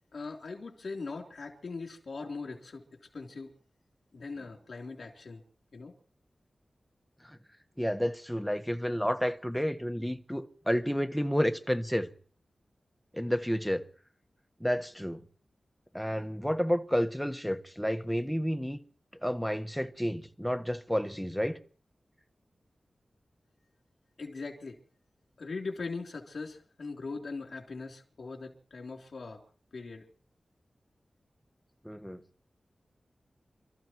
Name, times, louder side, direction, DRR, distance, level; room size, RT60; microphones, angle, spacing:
voice 1, 0.1-3.5 4.1-5.4 5.7-6.0 24.2-24.8 25.4-29.4 29.7-30.1, left 4 dB, 70° left, 3.4 m, -40 dB
voice 2, 7.8-12.1 13.1-13.8 14.6-15.2 15.9-18.8 19.2-21.6 31.8-32.2, equal, ahead, 1.3 m, -30 dB
29.0 x 14.0 x 3.1 m
wide cardioid pair, 75°, 0 cm